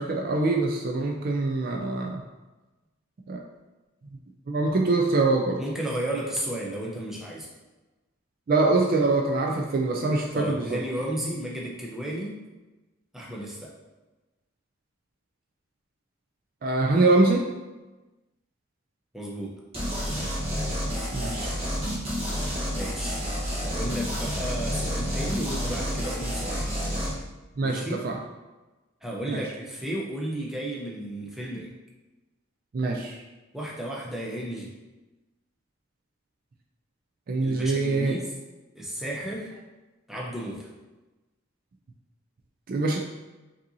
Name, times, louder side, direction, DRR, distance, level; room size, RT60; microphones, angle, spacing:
voice 1, 0.0-2.2 3.3-3.4 4.5-5.6 8.5-10.8 16.6-17.5 21.1-21.5 27.6-28.2 29.3-29.4 32.7-33.2 37.3-38.2 42.7-43.0, right 3 dB, 45° right, 1 dB, 0.3 m, -24 dB
voice 2, 5.6-7.5 10.3-12.4 13.1-13.7 19.1-19.5 22.7-23.2 23.6-26.7 27.6-28.0 29.0-31.7 33.5-34.7 37.4-38.3 38.7-39.5 40.1-40.7, right 1 dB, ahead, -4 dB, 0.6 m, -33 dB
sound 1, 19.7-27.1, equal, 30° right, 1.1 m, -29 dB
5.2 x 2.7 x 2.7 m, 1.1 s
head